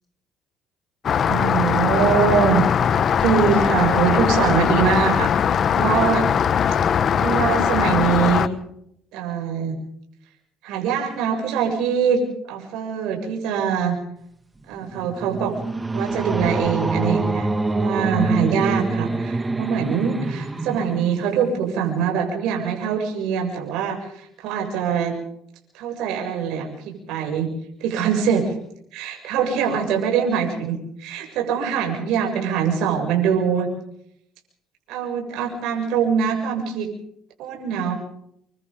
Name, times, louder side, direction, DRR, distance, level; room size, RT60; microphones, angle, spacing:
Rain, 1.0-8.5, left 8 dB, 45° left, 1.2 m, -20 dB
voice 1, 1.3-2.6 3.2-6.2 7.2-8.5 9.1-9.7 10.6-12.2 12.5-14.0 14.7-15.5 15.9-25.1 25.7-27.5 27.8-28.5 28.9-33.7 34.9-36.9 37.4-37.9, right 7 dB, 80° right, 1 dB, 7.3 m, -23 dB
sound 1, 14.6-22.0, right 2 dB, 20° right, 2.2 m, -26 dB
29.0 x 25.0 x 3.9 m, 0.71 s
cardioid pair, 105°, 0 cm